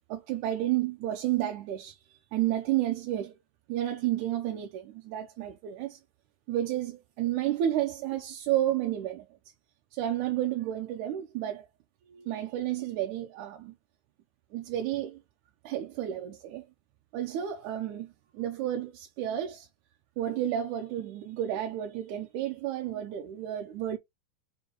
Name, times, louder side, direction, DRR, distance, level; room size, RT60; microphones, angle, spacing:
voice 1, 0.1-3.4 3.7-6.0 6.5-9.3 9.9-11.7 12.1-13.7 14.5-15.2 15.6-16.7 17.1-19.7 20.2-24.0, right 12 dB, 75° right, 1.9 m, -31 dB
6.3 x 2.2 x 3.7 m
omnidirectional pair, 3.9 m